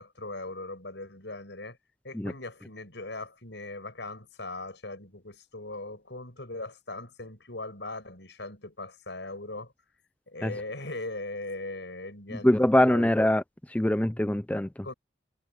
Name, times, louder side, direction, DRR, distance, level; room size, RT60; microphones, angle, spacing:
voice 1, 0.0-1.8 2.0-9.7 10.3-13.0 14.8-14.9, left 2 dB, 70° left, 7.5 m, -39 dB
voice 2, 12.3-13.4 13.7-14.7, left 1 dB, 10° left, 0.4 m, -23 dB
head